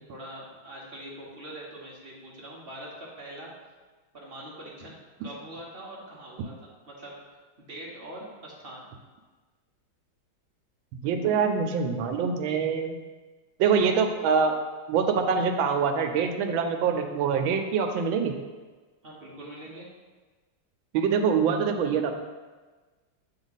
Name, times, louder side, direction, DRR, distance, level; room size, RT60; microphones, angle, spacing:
voice 1, 0.1-3.5 4.1-8.9 19.0-19.9, right 1 dB, 40° right, -4 dB, 0.8 m, -43 dB
voice 2, 11.0-13.0 13.6-14.5 14.9-18.3 20.9-22.2, right 6 dB, 80° right, 5 dB, 1.3 m, -24 dB
7.1 x 3.5 x 4.0 m, 1.3 s
omnidirectional pair, 2.2 m